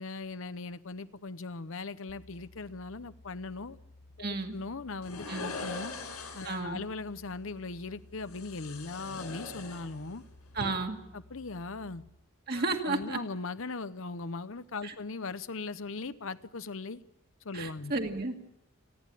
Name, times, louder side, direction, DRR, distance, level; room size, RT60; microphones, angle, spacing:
voice 1, 0.0-3.8 4.2-6.0 6.3-10.2 11.1-12.0 12.5-17.0 17.4-17.9, left 3 dB, 65° left, 0.8 m, -39 dB
sound 1, 2.1-12.1, left 2 dB, 50° left, 1.3 m, -56 dB
voice 2, 4.2-4.6 5.3-5.5 6.4-6.8 10.5-11.0 12.5-13.2 14.8-14.9 17.5-18.5, right 3 dB, 45° right, 2.1 m, -33 dB
sound 2, 5.0-6.7 8.3-10.2 10.5-10.7, left 3 dB, 85° left, 6.6 m, -41 dB
30.0 x 10.5 x 9.9 m
head